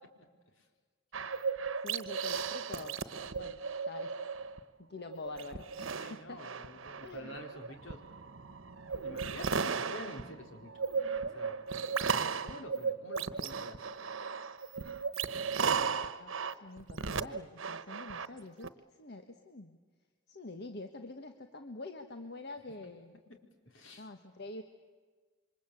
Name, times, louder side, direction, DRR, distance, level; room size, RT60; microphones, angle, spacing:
sound 1, 1.1-4.6 5.0-18.7, right 5 dB, 90° right, 1.1 m, -36 dB
voice 1, 1.8-3.0 3.3-3.6 3.9-4.1 4.9-6.4 7.0-7.3 16.2-16.4 16.6-18.7 19.0-19.8 20.3-23.1 24.0-24.6, left 2 dB, 55° left, 6 dB, 1.5 m, -46 dB
voice 2, 6.0-8.0 9.0-10.7 11.1-11.6 12.0-13.8 23.7-24.1, left 1 dB, 80° left, 4 dB, 4.4 m, -48 dB
28.0 x 24.5 x 8.5 m, 1.4 s
head